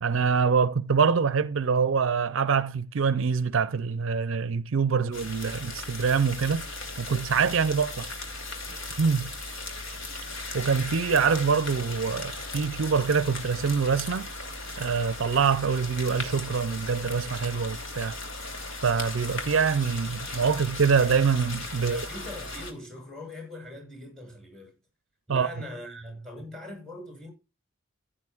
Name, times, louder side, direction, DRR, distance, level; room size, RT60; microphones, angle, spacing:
voice 1, 0.0-6.7 7.0-8.1 9.0-9.3 10.5-14.3 14.8-18.2 18.8-22.0 25.3-25.5, right 5 dB, 65° right, 0.5 m, -25 dB
sound 1, 5.1-22.7, left 2 dB, 60° left, 2.6 m, -37 dB
voice 2, 21.8-24.7 25.3-27.3, left 1 dB, 5° left, 7.0 m, -41 dB
15.5 x 10.0 x 2.4 m
head